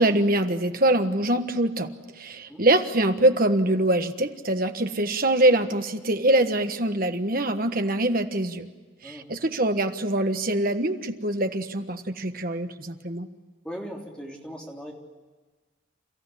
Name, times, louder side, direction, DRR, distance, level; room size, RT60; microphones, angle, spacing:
voice 1, 0.0-1.9 2.2-8.7 9.0-13.3, right 1 dB, 45° right, 7 dB, 1.4 m, -24 dB
voice 2, 9.0-9.6 13.6-14.9, equal, 5° left, -1 dB, 3.4 m, -39 dB
29.5 x 15.0 x 9.9 m, 1.4 s
head